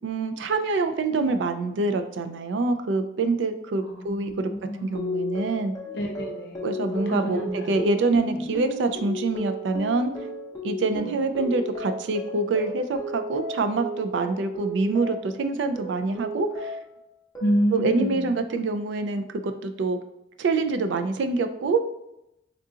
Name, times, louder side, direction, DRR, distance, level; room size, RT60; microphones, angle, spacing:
voice 1, 0.0-4.5 4.8-5.7 6.6-10.1 10.6-16.8 17.7-19.3 19.6-20.0 20.4-21.8, right 3 dB, 70° right, 8 dB, 0.3 m, -25 dB
voice 2, 3.8-4.8 5.8-7.8 8.3-8.5 11.0-11.1 17.4-18.3, equal, 60° left, 2 dB, 0.6 m, -29 dB
sound 1, 5.0-15.4 15.8-17.0 17.4-17.9, equal, 20° left, 0.7 m, -34 dB
3.6 x 2.4 x 2.7 m, 0.87 s
head